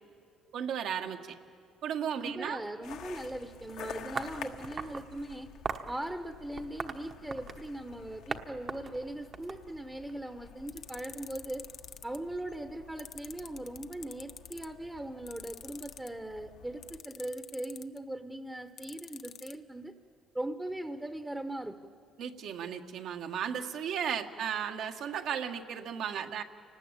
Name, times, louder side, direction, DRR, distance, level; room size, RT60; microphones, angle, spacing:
voice 1, 0.5-1.3 1.8-2.6 22.2-26.4, right 8 dB, 70° right, 5 dB, 1.6 m, -35 dB
voice 2, 2.2-5.5 5.9-11.7 12.0-19.9 20.3-21.8, right 1 dB, 10° right, 8 dB, 1.0 m, -39 dB
sound 1, 2.8-17.0, left 8 dB, 75° left, 1.5 m, -50 dB
sound 2, 4.2-5.1 5.6-5.9 6.6-7.7 8.3-8.4 8.7-10.1, right 5 dB, 40° right, 1.2 m, -38 dB
sound 3, 10.7-12.2 13.0-14.7 15.3-16.1 16.8-18.0 18.8-19.5, left 8 dB, 55° left, 0.8 m, -45 dB
29.0 x 19.0 x 8.9 m, 2.6 s
cardioid pair, 110°, 0 cm